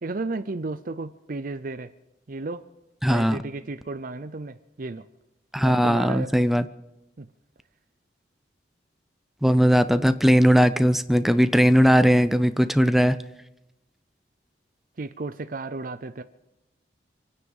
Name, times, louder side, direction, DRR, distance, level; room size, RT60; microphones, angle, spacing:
voice 1, 0.0-1.9 2.3-2.6 3.0-5.0 5.6-6.3 7.2-7.3 15.0-16.2, right 3 dB, 50° right, 11 dB, 0.6 m, -33 dB
voice 2, 3.0-3.4 5.5-6.7 9.4-13.2, equal, ahead, 12 dB, 0.5 m, -19 dB
27.0 x 9.8 x 5.5 m, 0.93 s
head